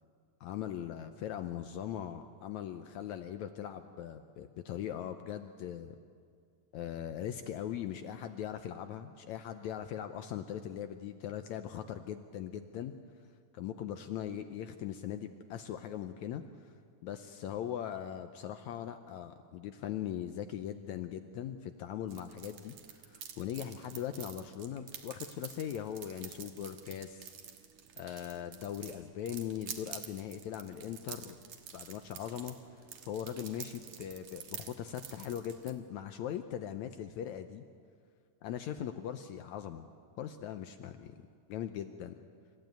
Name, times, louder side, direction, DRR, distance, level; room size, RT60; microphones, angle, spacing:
voice 1, 0.4-6.0 6.7-12.9 13.5-16.7 17.0-27.3 28.0-31.4 31.7-32.5 33.0-37.6 38.4-39.9 40.2-41.1 41.5-42.1, left 10 dB, 75° left, 8 dB, 1.7 m, -40 dB
sound 1, 22.1-35.7, right 8 dB, 60° right, 2.3 m, -49 dB
26.0 x 14.5 x 9.2 m, 2.2 s
omnidirectional pair, 4.0 m